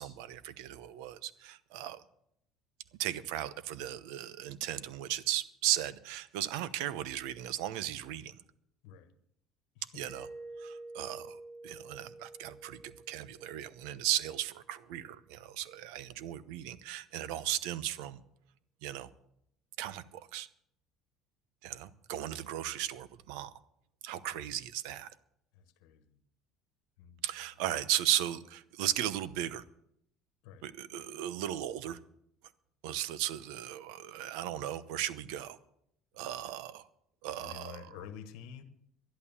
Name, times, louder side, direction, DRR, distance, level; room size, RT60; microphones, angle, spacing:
voice 1, 0.0-2.0 3.0-8.3 9.9-10.3 10.6-18.2 18.8-19.1 19.8-20.5 21.6-23.5 24.0-25.1 27.2-29.6 30.6-32.0 32.8-35.6 36.2-36.8 37.2-37.9, right 12 dB, 85° right, 17 dB, 0.8 m, -36 dB
Mallet percussion, 10.1-14.7, right 2 dB, 15° right, 6.1 m, -49 dB
voice 2, 25.5-26.2 27.0-27.2 30.4-30.6 37.4-38.6, left 8 dB, 80° left, 9 dB, 1.2 m, -49 dB
11.5 x 11.0 x 7.1 m, 0.74 s
cardioid pair, 130°, 0 cm